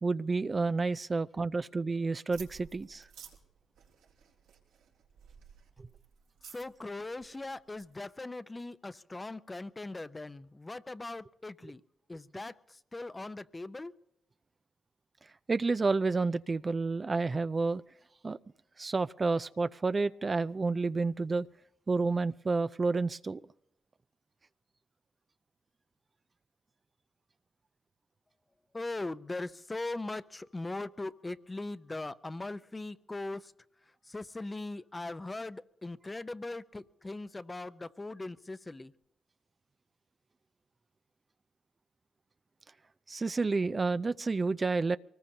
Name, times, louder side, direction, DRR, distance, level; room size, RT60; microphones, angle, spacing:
voice 1, 0.0-3.1 15.5-17.8 18.2-18.4 18.8-21.5 21.9-23.4 43.1-45.0, right 3 dB, 35° right, 13 dB, 0.5 m, -30 dB
sound 1, 2.3-8.0, right 7 dB, 90° right, 4.0 m, -54 dB
voice 2, 6.5-11.8 12.1-13.9 28.7-33.5 34.1-38.9, left 2 dB, 25° left, 13 dB, 0.7 m, -40 dB
24.0 x 19.5 x 2.8 m, 0.79 s
supercardioid pair, 50°, 0 cm